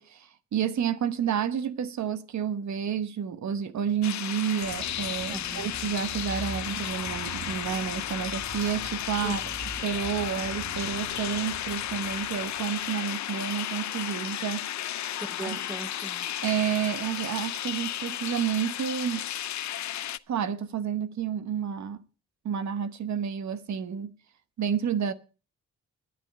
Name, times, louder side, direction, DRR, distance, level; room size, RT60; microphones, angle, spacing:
voice 1, 0.0-9.4 9.8-14.7 15.4-15.6 16.4-19.3 20.3-22.0 22.4-24.2 24.6-25.1, right 8 dB, 70° right, 1.1 m, -30 dB
sound 1, 4.0-20.2, left 12 dB, 70° left, 0.6 m, -34 dB
sound 2, 4.6-12.9, right 3 dB, 40° right, 1.6 m, -43 dB
voice 2, 5.3-5.7 9.2-9.5 15.2-16.3, right 2 dB, 10° right, 0.7 m, -39 dB
11.5 x 10.0 x 6.6 m
wide cardioid pair, 175°, 30 cm